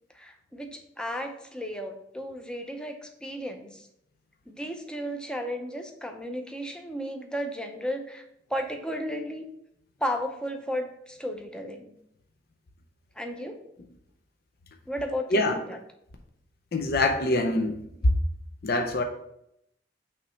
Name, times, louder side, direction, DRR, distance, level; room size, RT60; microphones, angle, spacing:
voice 1, 0.1-3.9 4.5-8.2 8.5-9.5 10.0-11.9 13.2-13.6 14.9-15.8, equal, 5° left, 4 dB, 0.6 m, -34 dB
voice 2, 16.7-18.1 18.6-19.0, left 2 dB, 60° left, 4 dB, 0.6 m, -24 dB
5.9 x 3.2 x 5.1 m, 0.77 s
head